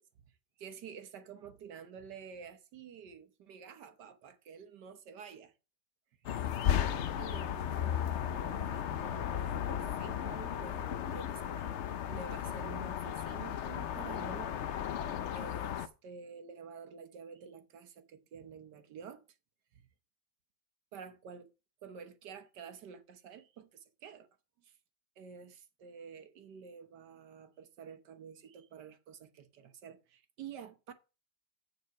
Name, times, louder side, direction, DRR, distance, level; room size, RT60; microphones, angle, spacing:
voice 1, 0.6-5.5 6.3-6.4 7.2-14.5 15.3-19.2 19.7-19.9 20.9-21.5 21.8-24.3 24.6-24.8 25.2-30.9, right 6 dB, 65° right, 1.5 m, -50 dB
sound 1, 6.3-15.9, left 9 dB, 75° left, 0.6 m, -35 dB
8.2 x 6.9 x 4.7 m
omnidirectional pair, 2.0 m